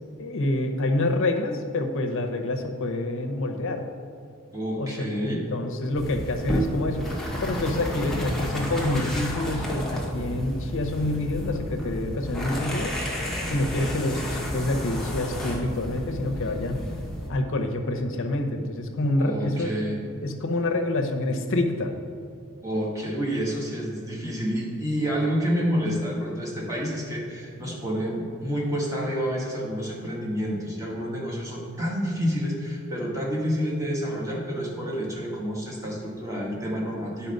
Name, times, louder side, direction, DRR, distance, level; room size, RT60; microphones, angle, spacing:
voice 1, 0.2-3.9 4.8-7.1 7.4-13.0 13.5-16.8 17.3-19.7 20.2-21.9, left 2 dB, 60° left, 4 dB, 0.8 m, -27 dB
voice 2, 4.5-5.4 19.2-20.0 22.6-37.3, equal, 15° right, -3 dB, 1.5 m, -29 dB
sound 1, 5.9-17.3, equal, ahead, 1.0 m, -31 dB
10.5 x 4.3 x 5.4 m, 2.3 s
head